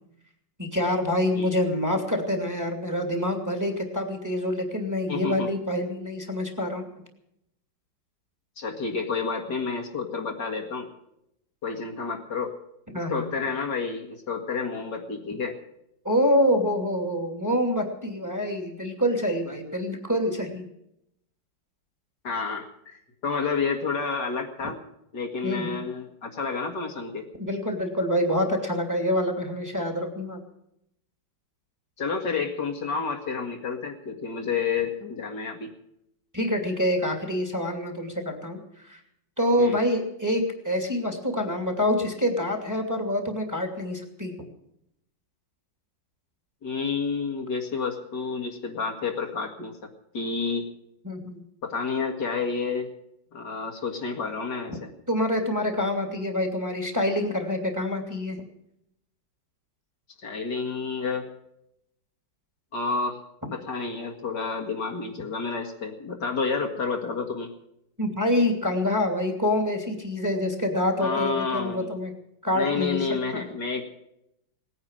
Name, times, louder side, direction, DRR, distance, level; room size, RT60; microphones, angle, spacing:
voice 1, 0.6-6.9 12.9-13.3 16.0-20.7 25.4-25.8 27.4-30.4 36.3-38.6 38.8-39.0 39.4-44.3 51.0-51.4 54.7-54.8 55.1-58.4 68.0-72.1 72.4-73.5, left 1 dB, 10° right, 3 dB, 2.7 m, -26 dB
voice 2, 5.1-5.5 8.6-10.9 11.6-12.5 12.9-15.5 22.2-24.8 25.1-27.3 32.0-35.7 39.6-39.8 46.6-49.8 50.1-50.7 51.6-52.9 53.3-54.8 60.2-61.3 62.7-63.2 63.5-67.5 71.0-71.9 72.5-73.8, left 5 dB, 65° left, 2 dB, 2.6 m, -30 dB
19.0 x 9.7 x 7.6 m, 0.79 s
omnidirectional pair, 2.0 m